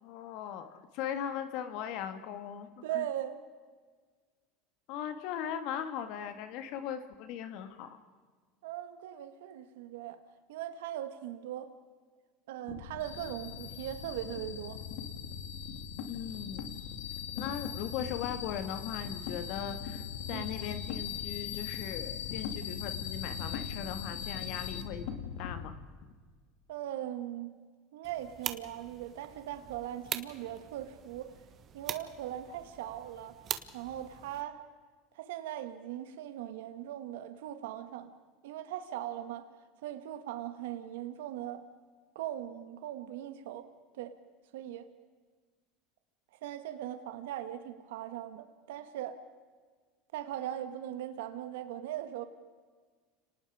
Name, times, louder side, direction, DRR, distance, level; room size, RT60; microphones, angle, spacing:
voice 1, 0.0-3.0 4.9-8.0 16.1-16.7 17.3-20.0 20.3-25.1 25.4-25.7, left 9 dB, 60° left, 9 dB, 1.8 m, -39 dB
voice 2, 2.8-3.4 8.6-10.2 10.5-11.7 12.5-14.8 20.3-20.4 26.7-27.5 27.9-31.3 31.7-33.3 33.7-34.6 35.1-38.1 38.4-39.4 39.8-41.6 42.1-43.7 44.0-44.1 44.5-44.9 46.4-49.2 50.1-52.2, right 12 dB, 85° right, 9 dB, 1.6 m, -39 dB
sound 1, 12.8-25.6, left 8 dB, 75° left, 2.6 m, -39 dB
sound 2, 28.0-34.4, right 9 dB, 35° right, 1.5 m, -43 dB
30.0 x 19.0 x 5.0 m, 1.5 s
supercardioid pair, 125°, 0 cm